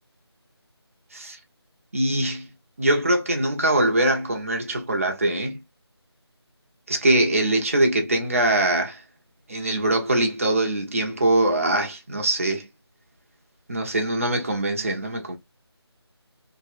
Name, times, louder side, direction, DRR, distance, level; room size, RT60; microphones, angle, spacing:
voice 1, 1.9-2.5 2.8-5.6 6.9-9.0 9.5-12.7 13.7-15.4, right 1 dB, 30° right, 0.7 m, -22 dB
2.9 x 2.9 x 2.5 m
figure-of-eight pair, 170°, 14 cm